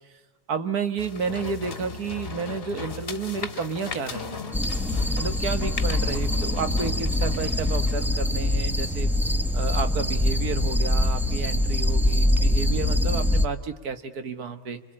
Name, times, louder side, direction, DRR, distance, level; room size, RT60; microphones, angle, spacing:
voice 1, 0.5-4.4 5.2-9.1 9.5-14.8, right 5 dB, 80° right, 9 dB, 2.0 m, -31 dB
sound 1, 1.0-8.1, left 4 dB, 40° left, 1.5 m, -37 dB
sound 2, 4.5-13.5, left 1 dB, ahead, 0.8 m, -24 dB
26.5 x 24.5 x 8.7 m, 1.2 s
omnidirectional pair, 1.6 m